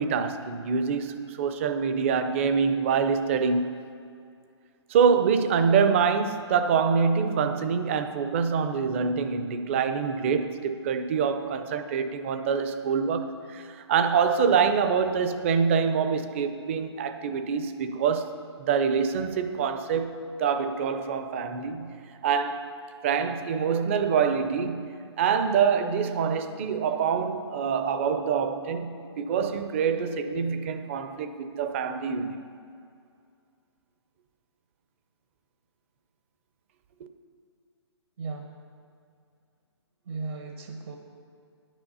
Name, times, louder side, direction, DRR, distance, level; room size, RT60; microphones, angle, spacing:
voice 1, 0.0-3.8 4.9-18.3 18.6-21.9 22.2-22.7 23.0-24.8 25.2-32.4, right 6 dB, 25° right, 9 dB, 0.6 m, -25 dB
voice 2, 38.2-38.6 40.1-41.0, right 4 dB, 55° right, 3 dB, 1.0 m, -36 dB
10.0 x 9.0 x 5.5 m, 2.4 s
hypercardioid pair, 160°, 15 cm